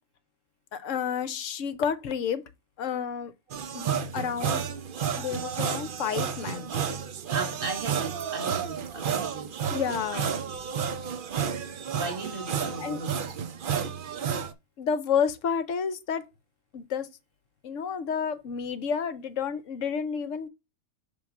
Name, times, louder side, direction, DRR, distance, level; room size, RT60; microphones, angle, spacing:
voice 1, 0.7-2.4 2.8-3.3 3.7-4.6 5.2-6.9 9.7-10.3 12.8-13.0 14.8-16.3 16.7-17.1 17.6-20.5, left 7 dB, 60° left, 1.0 m, -30 dB
sound 1, 3.5-14.5, right 7 dB, 55° right, 0.6 m, -31 dB
voice 2, 7.3-9.5 10.1-10.4 11.9-13.5, right 3 dB, 40° right, 1.6 m, -37 dB
5.5 x 3.5 x 5.8 m
omnidirectional pair, 1.6 m